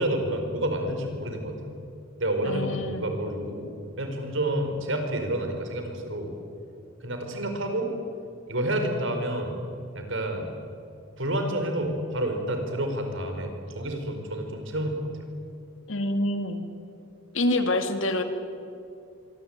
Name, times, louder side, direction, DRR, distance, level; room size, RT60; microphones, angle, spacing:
voice 1, 0.0-1.6 2.2-3.7 4.0-6.3 7.0-7.9 8.5-9.6 9.9-10.5 11.2-15.1, right 1 dB, 65° right, 5 dB, 4.9 m, -29 dB
voice 2, 2.4-3.1 15.9-16.6 17.3-18.2, left 1 dB, 65° left, 7 dB, 2.5 m, -26 dB
25.0 x 24.5 x 9.1 m, 2.6 s
head